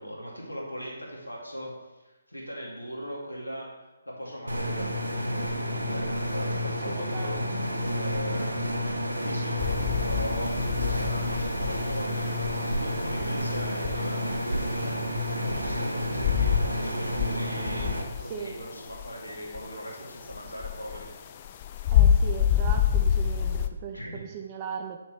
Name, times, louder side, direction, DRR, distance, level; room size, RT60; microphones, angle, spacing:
voice 1, 0.0-1.7 2.0-3.7 4.1-10.6 10.9-15.0 15.4-17.9 18.2-21.3 23.9-24.2, equal, 80° left, -3 dB, 2.5 m, -39 dB
sound 1, 4.5-18.0, equal, 85° right, 1.2 m, -30 dB
voice 2, 6.9-7.4 18.2-18.5 21.9-25.0, right 7 dB, 25° right, 5 dB, 0.6 m, -38 dB
sound 2, 9.6-14.6 14.9-16.9 17.1-19.9 20.2-23.7, left 9 dB, 30° left, 0.4 m, -27 dB
8.2 x 7.0 x 3.3 m, 1.1 s
figure-of-eight pair, 140°, 0 cm